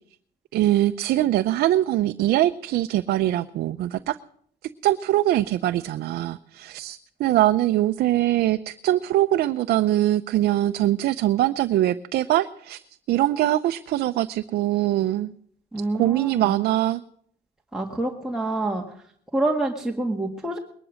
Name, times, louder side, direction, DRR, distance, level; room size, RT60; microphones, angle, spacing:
voice 1, 0.5-4.2 4.8-12.8 13.1-15.3 15.9-17.0, right 14 dB, 70° right, 9 dB, 0.6 m, -22 dB
voice 2, 15.7-16.6 17.7-18.8 19.3-20.6, right 2 dB, 5° right, 0 dB, 1.7 m, -27 dB
21.0 x 11.0 x 6.4 m, 0.64 s
cardioid pair, 110°, 17 cm